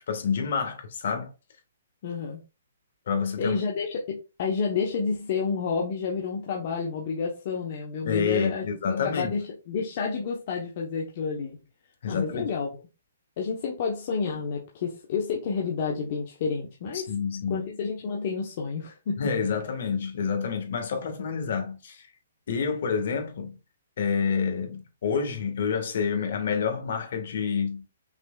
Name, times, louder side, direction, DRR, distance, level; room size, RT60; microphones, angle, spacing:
voice 1, 0.1-1.3 3.1-3.6 8.0-9.4 12.0-12.5 16.9-17.7 19.2-22.1 22.5-23.6 24.0-27.9, left 6 dB, 60° left, 1.6 m, -28 dB
voice 2, 2.0-2.4 3.4-11.6 12.1-12.7 13.4-17.1 17.5-19.3, left 5 dB, 45° left, 1.0 m, -30 dB
6.0 x 3.4 x 2.4 m
hypercardioid pair, 150°, 0 cm